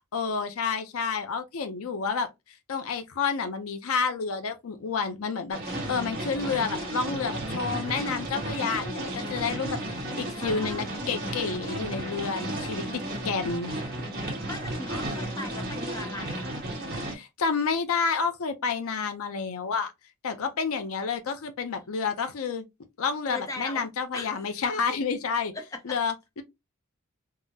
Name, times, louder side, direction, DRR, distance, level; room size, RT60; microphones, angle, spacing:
voice 1, 0.1-2.3 2.7-9.8 10.2-12.8 13.2-13.7 17.1-19.9 20.2-22.6 23.0-25.5 25.8-26.4, left 5 dB, 75° left, 0.5 m, -29 dB
sound 1, 5.5-17.1, right 1 dB, 40° right, 1.4 m, -33 dB
voice 2, 10.3-11.1 14.4-16.5 23.3-23.8 24.1-24.5 25.5-26.0, left 2 dB, 15° left, 0.6 m, -39 dB
3.6 x 2.0 x 2.6 m
head